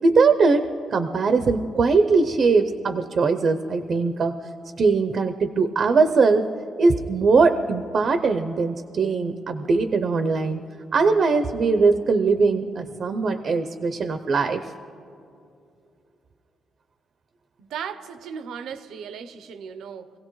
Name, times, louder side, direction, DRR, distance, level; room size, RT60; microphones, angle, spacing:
voice 1, 0.0-4.3 4.8-6.5 6.8-10.6 10.9-14.6, right 4 dB, 45° right, 8 dB, 0.6 m, -21 dB
voice 2, 17.6-20.1, right 7 dB, 85° right, 12 dB, 0.7 m, -36 dB
25.0 x 17.0 x 3.1 m, 2.5 s
cardioid pair, 150°, 0 cm